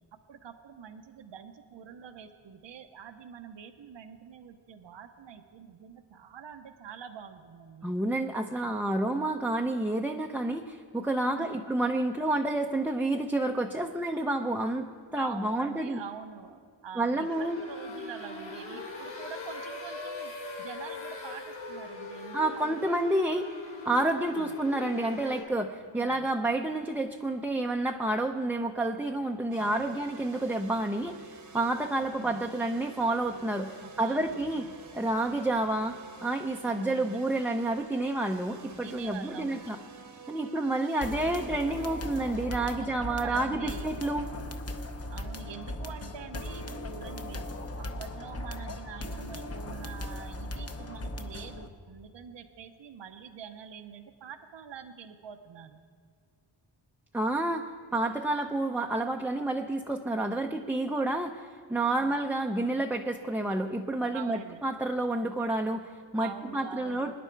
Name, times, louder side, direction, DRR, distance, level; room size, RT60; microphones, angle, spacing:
voice 1, 0.3-7.9 11.3-11.6 15.2-20.3 20.6-22.9 24.1-24.5 25.5-25.7 26.0-26.3 29.6-30.0 32.2-32.4 34.0-34.7 36.6-37.2 38.8-39.7 42.7-44.0 45.1-47.4 47.8-55.8 61.9-62.2 64.1-64.6 66.2-67.2, right 7 dB, 65° right, 7 dB, 0.8 m, -45 dB
voice 2, 7.8-14.9 15.1-16.0 17.0-17.6 22.3-23.5 23.8-34.6 34.9-35.9 36.2-39.8 40.3-44.3 57.1-57.6 57.9-67.2, right 2 dB, 5° right, 2 dB, 0.5 m, -29 dB
sound 1, 17.2-25.4, left 2 dB, 75° left, 3.4 m, -41 dB
sound 2, 29.5-42.5, right 5 dB, 40° right, 1.0 m, -49 dB
sound 3, 41.0-51.7, left 1 dB, 30° left, 0.9 m, -38 dB
24.5 x 10.5 x 4.5 m, 2.1 s
wide cardioid pair, 115°, 47 cm